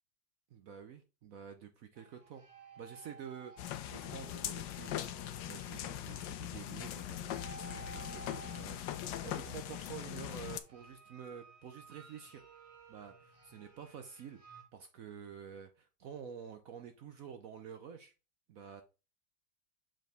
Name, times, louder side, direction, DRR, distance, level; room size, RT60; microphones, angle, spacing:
voice 1, 0.5-2.4 2.8-12.4 12.9-18.1 18.5-18.8, right 7 dB, 70° right, 0.8 m, -49 dB
sound 1, 2.0-14.6, right 5 dB, 35° right, 0.5 m, -56 dB
sound 2, 3.6-10.6, left 12 dB, 75° left, 1.3 m, -41 dB
6.3 x 4.4 x 3.4 m
omnidirectional pair, 2.0 m